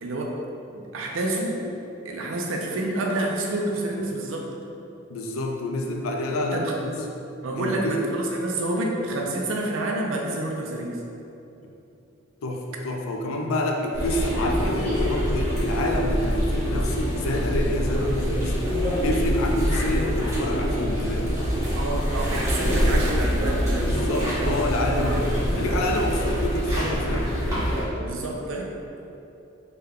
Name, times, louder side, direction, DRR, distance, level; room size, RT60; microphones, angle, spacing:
voice 1, 0.0-0.4 0.7-1.6 2.0-4.5 6.4-6.7 7.4-11.0 21.8-25.6 28.0-28.8, right 1 dB, 70° right, -1 dB, 0.5 m, -29 dB
voice 2, 5.1-6.9 7.6-8.0 11.6-11.7 12.4-18.6 19.0-21.4 23.9-25.2 25.5-27.3, left 1 dB, 85° left, 2 dB, 0.4 m, -28 dB
sound 1, 13.9-27.8, equal, 15° right, 1.0 m, -25 dB
3.3 x 2.2 x 3.5 m, 2.8 s
head